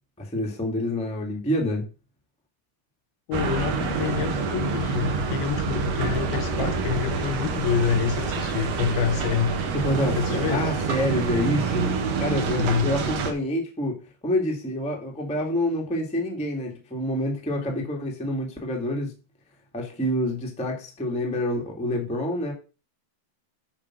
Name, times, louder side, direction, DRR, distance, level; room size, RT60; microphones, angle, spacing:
voice 1, 0.2-1.8 9.7-19.1 19.7-22.5, left 1 dB, 5° left, 1.1 m, -27 dB
voice 2, 3.3-9.6 10.2-10.7 12.5-12.9, left 8 dB, 75° left, 2.4 m, -27 dB
sound 1, 3.3-13.3, right 5 dB, 65° right, 1.7 m, -27 dB
8.8 x 5.2 x 6.1 m
omnidirectional pair, 4.6 m